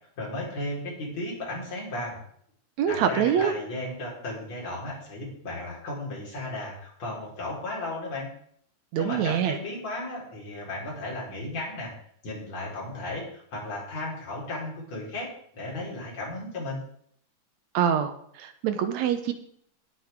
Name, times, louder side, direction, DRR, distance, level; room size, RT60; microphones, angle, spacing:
voice 1, 0.2-2.2 2.9-8.3 9.0-12.0 12.2-16.8, left 2 dB, 60° left, -5 dB, 5.5 m, -35 dB
voice 2, 2.8-3.5 8.9-9.6 17.7-18.1 18.4-19.3, right 8 dB, 75° right, 9 dB, 2.1 m, -24 dB
18.0 x 8.2 x 3.6 m, 0.65 s
omnidirectional pair, 3.4 m